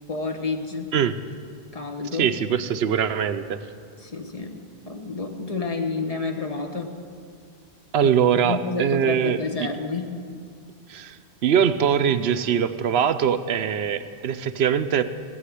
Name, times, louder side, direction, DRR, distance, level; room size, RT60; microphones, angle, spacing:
voice 1, 0.1-0.9 1.7-2.3 4.0-4.6 4.8-6.9 8.0-8.1 8.4-10.1, left 4 dB, 35° left, 4 dB, 1.2 m, -29 dB
voice 2, 2.2-3.6 7.9-9.7 10.9-15.0, right 8 dB, 80° right, 11 dB, 0.9 m, -22 dB
16.5 x 7.2 x 9.9 m, 2.2 s
omnidirectional pair, 1.1 m